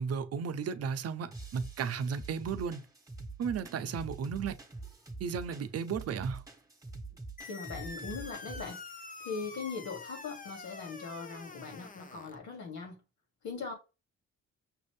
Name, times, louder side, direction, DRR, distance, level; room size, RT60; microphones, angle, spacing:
voice 1, 0.0-2.8 3.4-4.6 5.2-6.4, right 6 dB, 55° right, 0.7 m, -34 dB
sound 1, 1.3-8.8, right 3 dB, 10° right, 1.6 m, -45 dB
sound 2, 7.4-12.4, left 4 dB, 25° left, 0.8 m, -46 dB
voice 2, 7.5-8.8 9.2-13.0 13.4-13.7, left 4 dB, 70° left, 2.5 m, -40 dB
6.1 x 2.6 x 3.3 m
cardioid pair, 90°, 30 cm